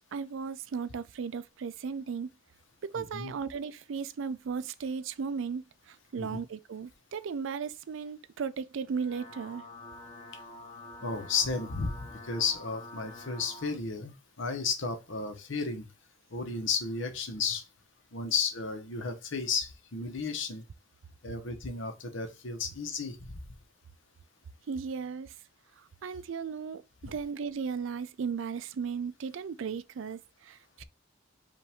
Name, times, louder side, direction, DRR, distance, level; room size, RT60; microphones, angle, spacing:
voice 1, 0.0-2.3 2.8-9.6 24.7-25.3 26.0-30.8, right 6 dB, 70° right, 0.4 m, -36 dB
voice 2, 2.9-3.3 6.2-6.4 11.0-14.1 14.4-15.9 16.3-17.6 18.1-20.6 21.2-23.3, left 5 dB, 70° left, 1.0 m, -33 dB
sound 1, 8.8-13.8, left 2 dB, 20° left, 1.5 m, -47 dB
5.3 x 2.6 x 3.5 m
head